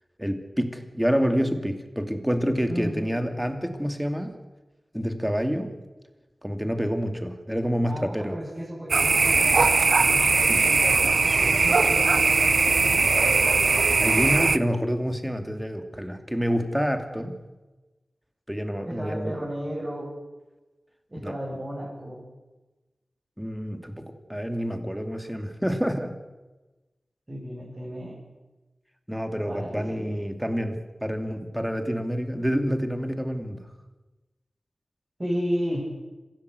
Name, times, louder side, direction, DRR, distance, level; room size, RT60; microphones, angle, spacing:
voice 1, 0.2-4.3 4.9-5.7 6.4-8.4 10.5-10.7 14.0-17.4 18.5-19.3 21.2-21.4 23.4-26.1 29.1-33.6, equal, 5° right, 7 dB, 2.6 m, -28 dB
voice 2, 2.7-3.1 7.9-9.8 10.1-13.1 18.8-20.1 21.1-22.2 27.3-28.2 29.4-30.2 35.2-35.9, equal, 30° right, -5 dB, 7.8 m, -33 dB
sound 1, 8.9-14.6, right 4 dB, 70° right, 0.8 m, -20 dB
25.5 x 16.5 x 8.1 m, 1.1 s
wide cardioid pair, 75°, 0 cm